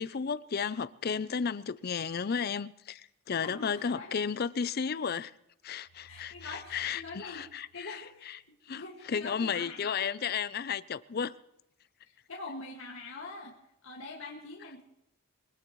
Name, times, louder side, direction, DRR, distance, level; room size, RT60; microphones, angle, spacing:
voice 1, 0.0-5.3 5.6-8.4 8.7-11.3, left 6 dB, 45° left, 0.5 m, -33 dB
voice 2, 3.4-4.1 6.1-7.4 7.7-8.4 8.7-10.4 12.3-13.5 13.8-14.8, left 3 dB, 65° left, 2.0 m, -44 dB
sound 1, 5.9-8.8, right 4 dB, 90° left, 1.4 m, -59 dB
23.5 x 17.5 x 3.1 m
head